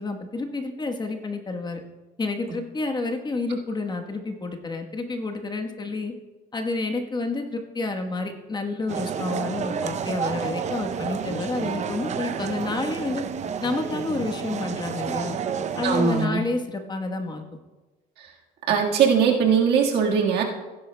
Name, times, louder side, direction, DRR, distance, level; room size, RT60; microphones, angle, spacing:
voice 1, 0.0-1.8 2.2-6.1 6.5-13.2 13.6-15.4 15.8-17.4, left 3 dB, 25° left, 4 dB, 1.2 m, -29 dB
sound 1, 8.9-16.3, right 7 dB, 45° right, 0.6 m, -30 dB
voice 2, 15.8-16.4 18.2-18.3 18.7-20.4, right 6 dB, 75° right, 0 dB, 1.6 m, -20 dB
16.5 x 10.0 x 2.2 m, 1.2 s
cardioid pair, 110°, 17 cm